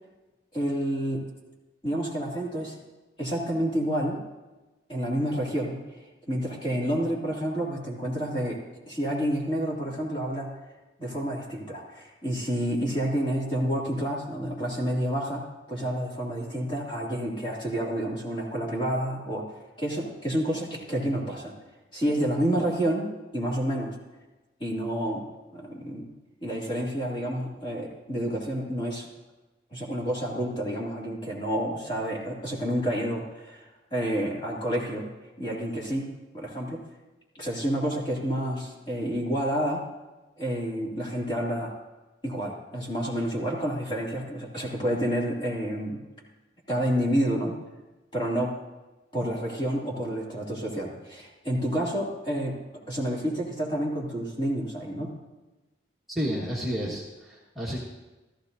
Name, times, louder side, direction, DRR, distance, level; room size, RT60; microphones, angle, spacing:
voice 1, 0.5-1.2 1.8-2.8 3.2-4.2 4.9-5.8 6.3-8.6 8.9-10.5 11.0-21.5 21.9-23.9 24.6-25.3 25.5-26.1 26.4-29.1 29.7-35.1 35.4-36.1 36.3-36.9 37.3-39.8 40.4-41.7 42.2-46.0 46.7-47.6 48.1-48.5 49.1-52.6 52.9-55.1, equal, 25° left, -4 dB, 2.5 m, -29 dB
voice 2, 56.1-57.8, equal, ahead, -7 dB, 1.5 m, -31 dB
15.0 x 14.0 x 2.7 m, 1.1 s
head